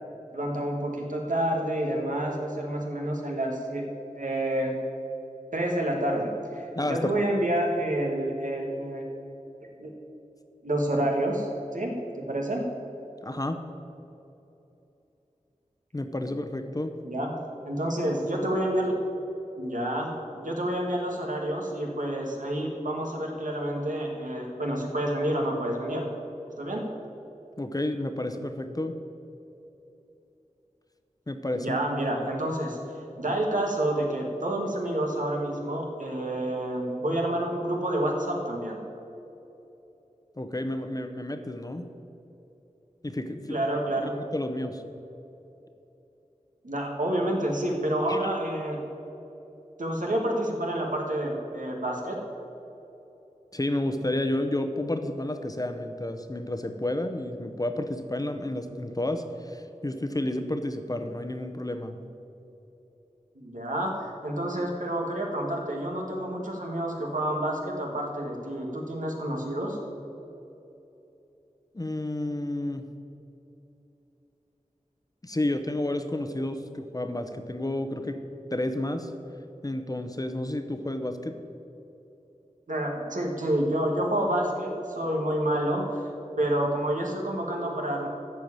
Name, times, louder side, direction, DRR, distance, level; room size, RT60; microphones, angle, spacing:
voice 1, 0.3-3.8 4.2-4.7 5.5-9.0 9.8-9.9 10.6-12.6 17.0-17.4 17.7-19.0 19.6-26.1 26.6-26.9 31.6-32.8 33.2-38.8 43.5-44.1 46.6-48.8 49.8-52.2 63.4-69.8 82.7-86.1 86.4-88.1, right 1 dB, 85° right, 0 dB, 1.8 m, -28 dB
voice 2, 6.7-7.1 13.2-13.6 15.9-16.9 27.6-28.9 31.3-31.8 40.4-41.9 43.0-43.6 44.0-44.8 48.1-48.2 53.5-62.0 71.7-72.8 75.2-78.2 78.5-79.1 79.6-81.4, left 1 dB, 30° left, 7 dB, 0.8 m, -31 dB
13.5 x 4.6 x 8.8 m, 2.9 s
wide cardioid pair, 60°, 13 cm